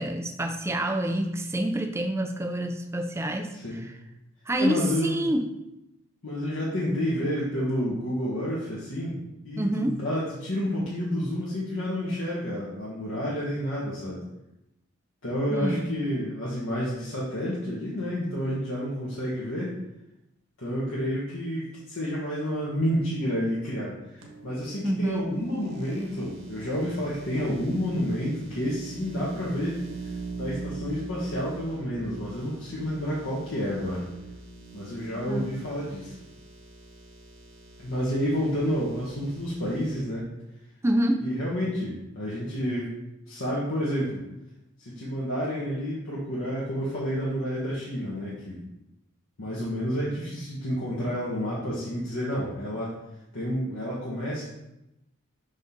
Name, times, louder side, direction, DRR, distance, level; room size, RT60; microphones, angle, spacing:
voice 1, 0.0-3.5 4.5-5.5 9.6-10.0 15.5-16.0 24.8-25.3 35.3-35.5 40.8-41.3, right 1 dB, 10° right, 6 dB, 0.4 m, -27 dB
voice 2, 3.5-3.9 4.6-5.2 6.2-14.2 15.2-19.7 20.6-29.8 30.3-34.1 34.7-36.1 37.8-40.2 41.2-42.9 43.3-44.2 44.8-48.6 49.4-52.9 53.3-54.4, equal, 80° left, -7 dB, 1.5 m, -30 dB
sound 1, 24.2-40.0, right 3 dB, 65° right, 1.2 m, -43 dB
5.8 x 5.2 x 3.8 m, 0.89 s
head